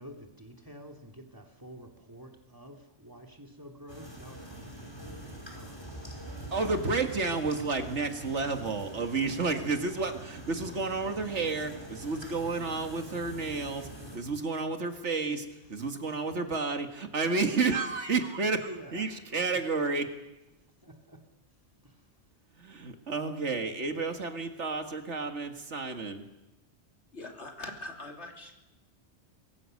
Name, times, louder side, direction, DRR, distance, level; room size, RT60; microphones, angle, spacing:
voice 1, 0.0-6.1 9.4-9.8 14.0-14.5 15.6-16.2 18.6-19.6 20.8-21.2 21.8-22.2 23.8-24.3, right 1 dB, 15° right, 2 dB, 2.8 m, -50 dB
sound 1, 3.9-14.2, right 1 dB, 20° left, 5.4 m, -44 dB
voice 2, 6.5-13.9 14.1-20.1 22.6-26.3, right 4 dB, 80° right, 6 dB, 2.1 m, -31 dB
voice 3, 27.1-28.5, left 2 dB, 75° left, 2 dB, 3.4 m, -42 dB
24.5 x 22.0 x 6.6 m, 0.97 s
omnidirectional pair, 1.2 m